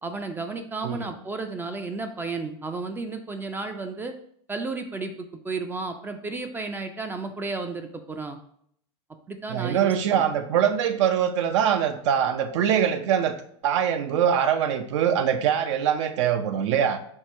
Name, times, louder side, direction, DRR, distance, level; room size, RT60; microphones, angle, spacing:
voice 1, 0.0-4.2 4.5-8.4 9.3-10.2, right 3 dB, 15° right, 7 dB, 0.3 m, -33 dB
voice 2, 9.5-13.4 13.6-17.0, right 9 dB, 75° right, 9 dB, 0.6 m, -23 dB
4.5 x 2.4 x 4.4 m, 0.65 s
supercardioid pair, 130°, 15 cm